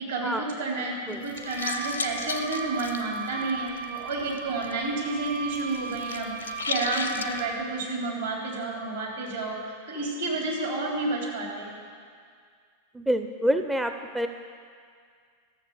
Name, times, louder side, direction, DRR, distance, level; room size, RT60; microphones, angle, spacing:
voice 1, 0.0-11.7, right 2 dB, 70° right, -3 dB, 3.5 m, -30 dB
sound 1, 1.1-4.8 5.1-7.4, left 5 dB, 75° left, 0.6 m, -36 dB
Wind instrument woodwind instrument, 1.4-7.7, right 6 dB, 45° right, 0.7 m, -37 dB
voice 2, 13.0-14.3, equal, 5° right, 7 dB, 0.4 m, -26 dB
13.0 x 7.2 x 6.8 m, 2.1 s
figure-of-eight pair, 90°, 0 cm